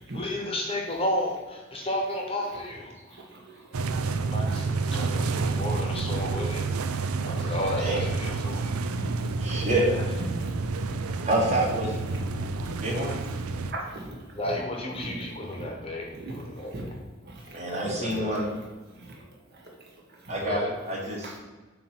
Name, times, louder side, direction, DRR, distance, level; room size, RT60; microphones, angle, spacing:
voice 1, 0.1-2.9 4.2-6.7 7.2-8.6 9.8-10.0 14.3-16.9 17.8-18.5 20.4-20.7, left 1 dB, 25° left, 1 dB, 1.0 m, -32 dB
voice 2, 3.0-4.6 4.9-5.2 5.5-5.8 6.2-6.3 6.7-7.4 8.4-9.7 10.3-11.3 12.1-14.5 15.0-15.7 16.1-17.9 18.3-18.4 18.7-20.4 21.2-21.4, right 1 dB, 45° right, -1 dB, 1.4 m, -42 dB
sound 1, 3.7-13.7, right 4 dB, 85° right, 0.5 m, -29 dB
voice 3, 9.4-9.9 11.2-12.0 12.7-13.1 17.5-18.5 20.3-21.4, right 1 dB, 30° right, -3 dB, 1.6 m, -27 dB
7.7 x 3.0 x 6.0 m, 1.2 s
head